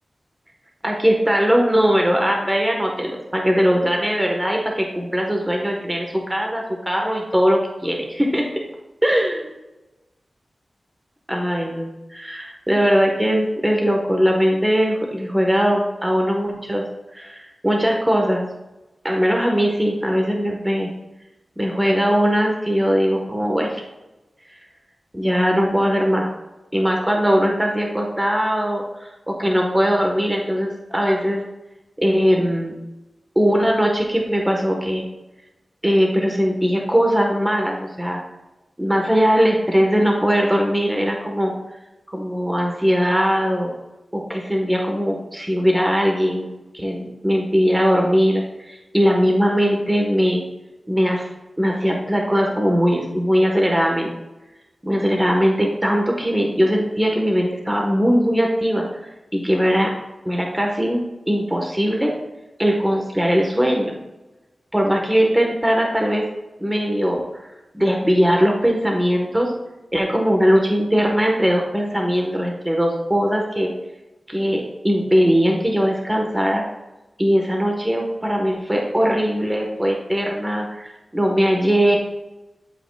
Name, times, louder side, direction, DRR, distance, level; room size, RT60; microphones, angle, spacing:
voice 1, 0.8-8.4 9.0-9.5 11.3-16.8 17.1-18.4 19.0-20.9 21.6-23.8 25.1-26.3 26.7-31.4 32.0-32.8 33.3-35.0 35.8-38.2 38.8-41.5 42.1-43.7 44.1-46.5 46.7-50.4 50.9-51.3 51.6-54.1 54.8-58.8 59.3-59.9 60.2-62.1 62.6-64.0 64.7-66.3 66.6-67.5 67.7-69.5 69.9-73.7 74.3-76.6 77.2-82.0, equal, 15° right, 0 dB, 1.3 m, -20 dB
11.5 x 5.0 x 2.3 m, 1.0 s
cardioid pair, 50°, 0 cm